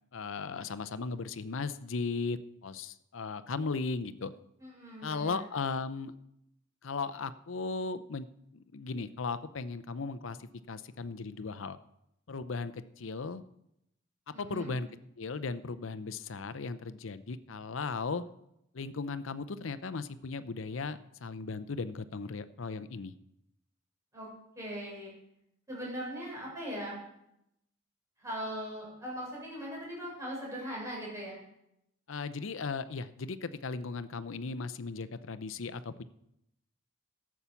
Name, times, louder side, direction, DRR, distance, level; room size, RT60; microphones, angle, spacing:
voice 1, 0.1-4.3 5.0-6.1 6.8-8.3 8.5-11.8 12.3-13.4 14.3-14.9 15.2-18.2 18.7-23.1 32.1-36.0, left 4 dB, 75° left, 14 dB, 0.6 m, -37 dB
voice 2, 4.6-5.4 14.3-14.7 24.1-24.3 24.5-25.1 25.7-27.0 28.2-31.4, equal, 15° right, -5 dB, 6.1 m, -39 dB
12.5 x 7.3 x 7.0 m, 0.81 s
head